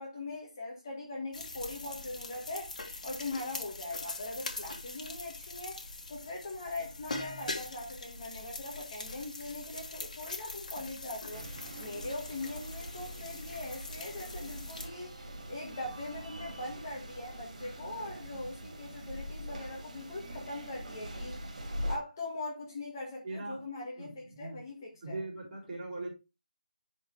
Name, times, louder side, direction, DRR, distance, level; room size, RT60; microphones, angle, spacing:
voice 1, 0.0-2.8 3.0-11.4 11.8-15.1 15.5-21.4 21.9-25.2, left 2 dB, 25° left, 1.7 m, -41 dB
sound 1, 1.3-14.9, left 3 dB, 60° left, 2.3 m, -43 dB
sound 2, 11.3-22.0, equal, 55° right, 3.2 m, -43 dB
voice 2, 23.2-23.6 24.0-24.6 25.0-26.1, right 2 dB, 10° right, 4.2 m, -40 dB
11.0 x 4.5 x 3.3 m
hypercardioid pair, 175°, 5 cm